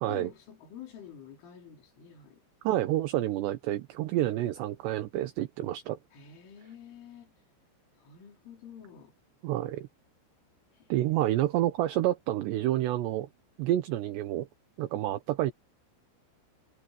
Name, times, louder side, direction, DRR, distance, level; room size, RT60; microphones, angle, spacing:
voice 1, 0.1-2.4 6.1-7.4 8.0-9.2 10.7-11.0 12.9-13.1, left 9 dB, 70° left, 7.0 m, -49 dB
voice 2, 2.6-6.0 9.4-9.9 10.9-13.3 13.6-14.5 14.8-15.5, right 14 dB, 70° right, 2.8 m, -29 dB
omnidirectional pair, 5.9 m